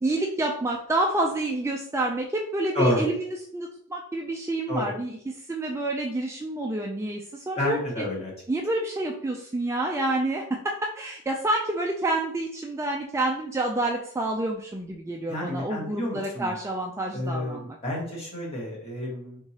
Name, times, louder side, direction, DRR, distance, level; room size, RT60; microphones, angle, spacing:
voice 1, 0.0-8.0 8.5-17.8, right 2 dB, 15° right, 1 dB, 0.3 m, -28 dB
voice 2, 7.6-8.3 15.3-16.5 17.1-19.4, left 1 dB, 30° left, -4 dB, 1.6 m, -29 dB
4.6 x 3.6 x 2.9 m, 0.64 s
head